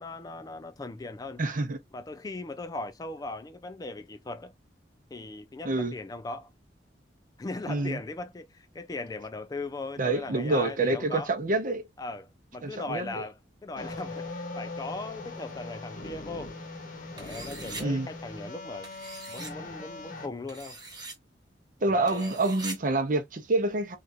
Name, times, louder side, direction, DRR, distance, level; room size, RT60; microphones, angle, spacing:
voice 1, 0.0-1.4 1.9-4.5 5.1-6.5 7.4-11.3 12.0-16.6 17.1-18.9 19.3-20.8 21.8-22.4, left 3 dB, 20° left, 0.3 m, -39 dB
voice 2, 1.4-1.8 5.6-5.9 7.7-8.0 10.0-11.8 12.6-13.2 17.8-18.1 21.8-24.0, right 2 dB, 50° right, 0.7 m, -27 dB
sound 1, 13.8-20.3, left 2 dB, 45° left, 0.8 m, -40 dB
sound 2, 17.2-17.8 18.8-19.5 20.5-21.2 22.1-22.8, right 3 dB, 25° right, 1.1 m, -41 dB
3.2 x 2.5 x 2.4 m
head